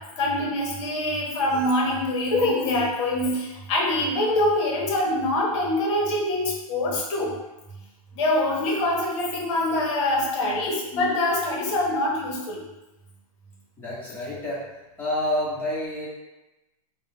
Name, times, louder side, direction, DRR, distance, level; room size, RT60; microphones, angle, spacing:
voice 1, 0.2-7.3 8.1-12.6, left 1 dB, 50° left, -2 dB, 0.8 m, -24 dB
voice 2, 13.8-14.6 15.0-16.1, left 1 dB, 10° left, -8 dB, 0.9 m, -28 dB
2.3 x 2.0 x 3.3 m, 1.0 s
hypercardioid pair, 140°, 20 cm